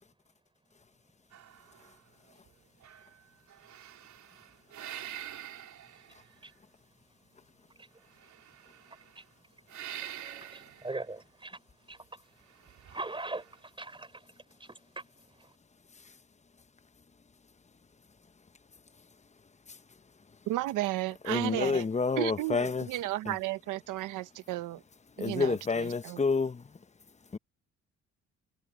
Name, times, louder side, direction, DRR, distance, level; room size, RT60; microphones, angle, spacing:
sound 1, 1.3-2.5 2.8-6.5 8.1-9.2 9.7-11.0 12.5-13.6, right 11 dB, 70° right, 3.6 m, -46 dB
voice 1, 7.7-8.3 8.6-9.3 9.8-11.6 11.9-15.6, right 2 dB, 15° right, 4.0 m, -43 dB
voice 2, 20.5-21.8 22.2-24.8 25.2-26.2, right 16 dB, 90° right, 0.9 m, -33 dB
voice 3, 21.2-22.9 23.2-23.4 25.2-26.7 27.3-27.4, left 4 dB, 25° left, 1.1 m, -29 dB
cardioid pair, 90°, 30 cm